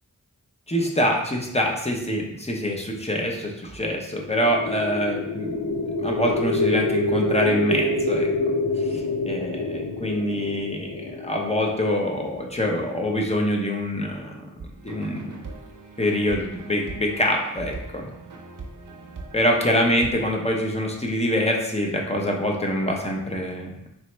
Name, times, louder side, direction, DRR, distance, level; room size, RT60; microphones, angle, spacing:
voice 1, 0.7-8.5 8.8-14.5 14.8-15.4 16.0-18.1 19.3-23.9, equal, 20° left, 0 dB, 0.8 m, -25 dB
sound 1, 4.2-12.3, left 2 dB, 90° left, 0.6 m, -26 dB
sound 2, 14.6-20.4, right 3 dB, 70° right, 0.8 m, -41 dB
4.4 x 3.0 x 3.2 m, 0.83 s
wide cardioid pair, 70°, 33 cm